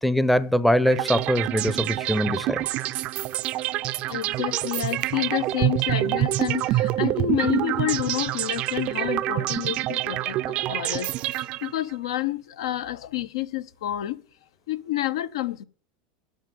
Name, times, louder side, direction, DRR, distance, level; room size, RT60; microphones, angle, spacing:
voice 1, 0.0-2.7, equal, ahead, 0.6 m, -22 dB
sound 1, 0.8-11.9, right 15 dB, 45° right, 0.4 m, -26 dB
voice 2, 4.1-14.2 14.7-15.6, left 14 dB, 80° left, 0.8 m, -29 dB
9.4 x 6.4 x 7.6 m
supercardioid pair, 125°, 3 cm